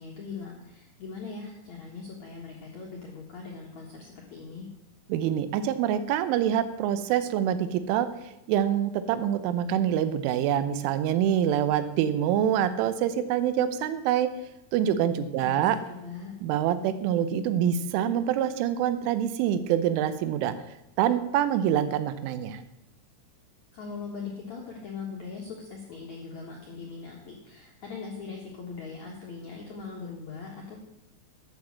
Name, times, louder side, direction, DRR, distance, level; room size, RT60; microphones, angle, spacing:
voice 1, 0.0-4.7 15.4-16.3 23.7-30.8, left 5 dB, 75° left, -2 dB, 1.6 m, -40 dB
voice 2, 5.1-8.1 8.5-14.3 14.7-15.8 16.4-20.6 21.0-22.6, right 10 dB, 80° right, 12 dB, 3.3 m, -25 dB
11.5 x 7.4 x 7.4 m, 0.88 s
omnidirectional pair, 5.6 m